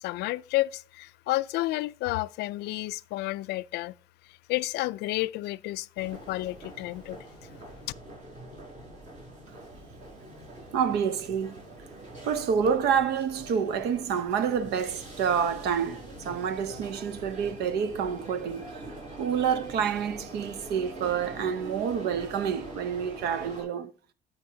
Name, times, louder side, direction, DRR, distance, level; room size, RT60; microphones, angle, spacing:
voice 1, 0.0-3.9 4.5-7.2, left 18 dB, 80° left, 0.4 m, -31 dB
sound 1, 6.0-23.6, right 1 dB, 45° right, 5.1 m, -44 dB
voice 2, 10.7-11.6 12.2-18.7 19.2-23.9, right 7 dB, 75° right, 0.8 m, -28 dB
12.5 x 5.7 x 2.7 m
cardioid pair, 110°, 17 cm